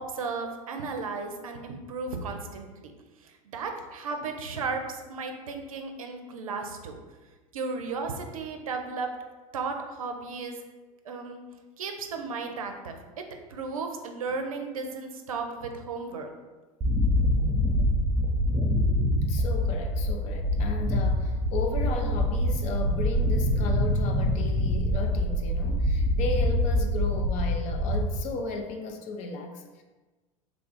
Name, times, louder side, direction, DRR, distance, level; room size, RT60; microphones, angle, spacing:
voice 1, 0.0-2.9 3.2-7.0 7.5-9.1 9.5-10.6 11.0-11.4 11.8-13.0 13.5-16.3, right 4 dB, 75° right, 4 dB, 0.5 m, -34 dB
sound 1, 16.8-28.0, left 1 dB, 30° right, 0.7 m, -25 dB
voice 2, 19.3-29.8, left 3 dB, 40° left, 4 dB, 0.5 m, -35 dB
3.4 x 2.4 x 3.8 m, 1.2 s
figure-of-eight pair, 80°, 18 cm